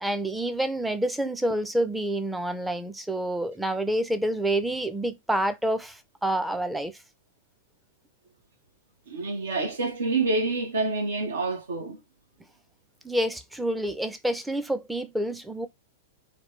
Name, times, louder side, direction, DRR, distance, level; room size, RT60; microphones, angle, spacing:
voice 1, 0.0-6.9 13.0-15.7, right 1 dB, 5° right, 0.5 m, -28 dB
voice 2, 9.1-12.0, right 3 dB, 80° right, 1.1 m, -27 dB
3.2 x 2.2 x 3.2 m
hypercardioid pair, 110°, 0 cm